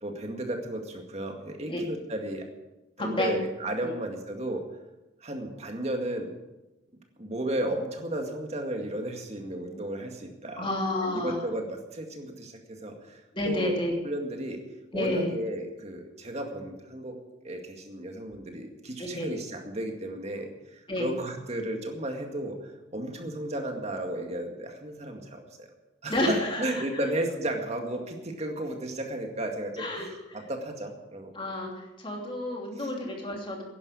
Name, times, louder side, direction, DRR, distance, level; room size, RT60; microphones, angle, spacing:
voice 1, 0.0-2.5 3.0-4.6 5.2-6.3 7.2-10.7 11.0-13.7 14.0-14.6 14.9-17.2 17.4-25.7 26.0-31.3 32.8-32.9, right 1 dB, 35° right, 3 dB, 2.1 m, -34 dB
voice 2, 3.0-3.3 3.8-3.9 10.6-11.4 13.3-13.9 14.9-15.3 19.0-19.3 20.9-21.1 26.1-26.8 29.8-30.1 31.3-31.7 32.0-33.6, left 1 dB, 25° left, 0 dB, 2.9 m, -30 dB
11.0 x 10.5 x 8.4 m, 1.0 s
head